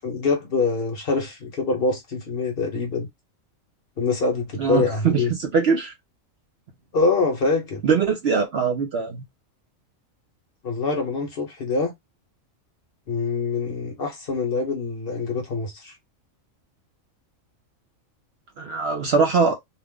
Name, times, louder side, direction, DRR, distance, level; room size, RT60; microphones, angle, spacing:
voice 1, 0.0-3.1 4.0-5.3 6.9-7.8 10.6-11.9 13.1-15.9, left 4 dB, 50° left, 1.0 m, -24 dB
voice 2, 4.6-5.9 7.8-9.2 18.6-19.5, right 5 dB, 60° right, 0.7 m, -22 dB
2.7 x 2.0 x 3.5 m
omnidirectional pair, 1.4 m